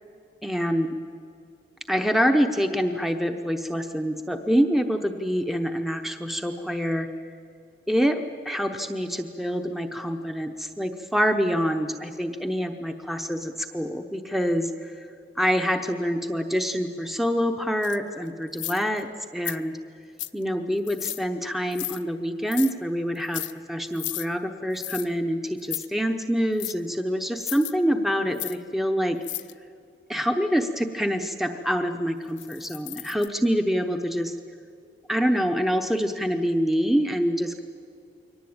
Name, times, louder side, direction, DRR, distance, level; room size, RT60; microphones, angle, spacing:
voice 1, 0.4-1.0 1.9-7.1 7.9-14.9 15.4-19.8 20.3-29.2 30.1-34.3 35.1-37.6, equal, ahead, 6 dB, 0.8 m, -26 dB
sound 1, 17.8-18.0 18.5-19.0 19.5-19.6 20.2-20.4 20.9-21.2 21.7-22.0 22.5-22.7 23.2-23.5 23.9-24.3 24.8-25.1 25.6-25.9 26.6-26.7 27.4-27.7 28.3-28.6 29.2-29.5 32.4-33.3, left 17 dB, 80° left, 0.7 m, -34 dB
23.0 x 18.5 x 8.7 m, 2.4 s
head